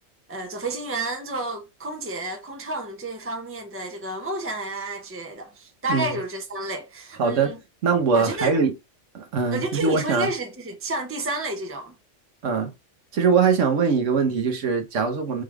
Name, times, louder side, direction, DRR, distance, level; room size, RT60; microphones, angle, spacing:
voice 1, 0.3-7.6 8.1-8.5 9.5-11.9, right 2 dB, 20° right, 0.3 m, -30 dB
voice 2, 7.2-7.5 7.8-8.7 9.1-10.3 12.4-12.7 13.1-15.4, right 5 dB, 90° right, 1.4 m, -22 dB
5.1 x 3.4 x 2.3 m
omnidirectional pair, 1.2 m